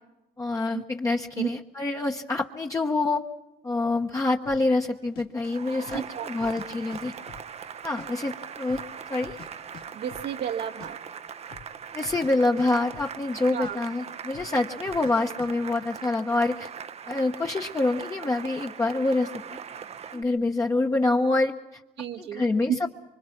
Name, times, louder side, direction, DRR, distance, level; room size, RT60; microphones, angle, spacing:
voice 1, 0.4-3.2 3.6-7.1 7.8-8.8 9.1-9.4 11.9-16.7 17.1-19.3 20.1-21.8 22.2-22.7, left 2 dB, 20° left, 2 dB, 1.0 m, -26 dB
sound 1, 4.5-4.7 5.2-5.3 5.8-6.1 6.4-7.0 7.3-8.1 8.3-8.4 8.7-9.5 9.7-9.8 10.1-10.3 10.6-10.9 11.4-11.7 12.0-12.3 12.6-13.4 13.6-13.7 14.3-14.6 14.9-15.1 15.4-15.5, left 8 dB, 70° left, 2.3 m, -46 dB
Cheering / Applause, 5.4-20.2, right 7 dB, 40° right, 0.7 m, -40 dB
voice 2, 5.9-6.5 9.9-11.0 13.5-13.8 22.0-22.4, right 9 dB, 75° right, 3 dB, 1.7 m, -33 dB
25.0 x 24.0 x 6.0 m, 1.0 s
cardioid pair, 110°, 17 cm